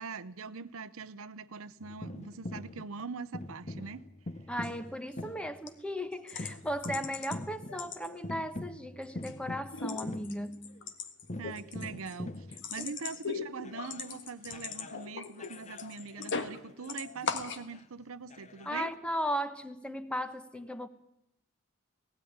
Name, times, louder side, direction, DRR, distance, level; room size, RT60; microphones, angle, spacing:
voice 1, 0.0-4.1 11.4-18.9, right 5 dB, 70° right, 0.7 m, -42 dB
sound 1, 1.8-2.9 3.3-5.7 6.3-10.8 11.2-14.1 14.5-15.1 15.4-17.3 17.6-17.8 18.3-18.8, left 1 dB, 35° left, 0.9 m, -44 dB
sound 2, 4.5-4.7 5.1-5.4 5.7-5.8 6.3-7.4 7.7-8.4 8.8-9.4 9.6-16.6 16.8-17.6, left 5 dB, 60° left, 1.6 m, -39 dB
voice 2, 4.5-10.8 12.8-12.9 18.6-20.9, equal, 5° left, 1.1 m, -36 dB
18.0 x 16.5 x 9.5 m
head